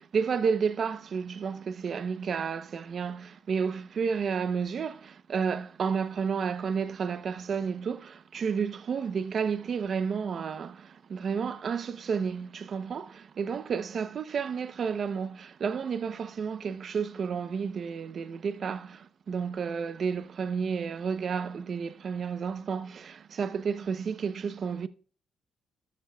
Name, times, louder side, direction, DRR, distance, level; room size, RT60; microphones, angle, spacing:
voice 1, 0.0-24.9, right 6 dB, 50° right, 0.7 m, -31 dB
13.0 x 12.0 x 2.3 m
cardioid pair, 90°, 0 cm